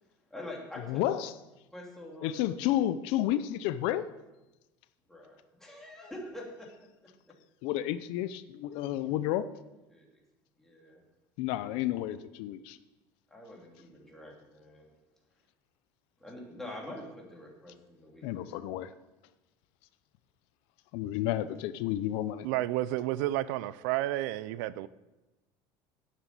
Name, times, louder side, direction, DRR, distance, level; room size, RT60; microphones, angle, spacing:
voice 1, 0.3-1.0 1.7-2.4 5.1-6.7 7.0-7.1 8.7-8.8 9.9-10.2 10.6-11.0 13.3-14.9 16.2-18.4, left 1 dB, 5° left, -2 dB, 3.2 m, -45 dB
voice 2, 0.9-1.3 2.2-4.1 7.6-9.4 11.4-12.8 18.2-18.9 20.9-22.5, left 13 dB, 70° left, 13 dB, 0.6 m, -31 dB
voice 3, 22.4-24.9, right 15 dB, 90° right, 17 dB, 0.5 m, -31 dB
9.0 x 7.6 x 8.4 m, 1.0 s
cardioid pair, 135°, 10 cm